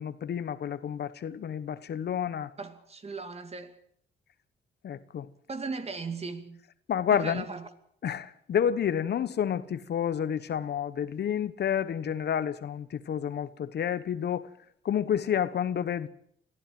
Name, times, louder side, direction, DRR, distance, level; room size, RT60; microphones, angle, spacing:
voice 1, 0.0-2.5 4.8-5.3 6.9-7.5 8.0-14.5 14.8-16.1, left 8 dB, 55° left, 1.1 m, -29 dB
voice 2, 2.6-3.8 5.5-6.6 7.1-7.7, right 4 dB, 30° right, 2.5 m, -37 dB
22.5 x 15.0 x 7.6 m
cardioid pair, 90°, 20 cm